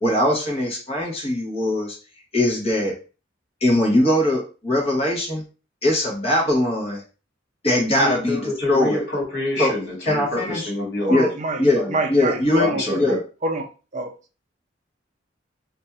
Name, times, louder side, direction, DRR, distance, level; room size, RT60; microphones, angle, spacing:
voice 1, 0.0-2.0 2.3-2.9 3.6-5.4 5.8-7.0 7.6-9.0 9.6-9.7 10.1-10.7 11.1-11.3 11.6-11.8 12.1-12.7 12.9-13.2, left 1 dB, 35° left, -2 dB, 0.9 m, -21 dB
voice 2, 8.0-11.3 11.7-11.9 12.6-13.2, left 2 dB, 60° left, -3 dB, 1.6 m, -26 dB
voice 3, 11.1-11.6 11.9-12.8 13.1-13.6 13.9-14.1, right 2 dB, 40° right, 3 dB, 0.5 m, -26 dB
2.5 x 2.3 x 4.1 m, 0.34 s
head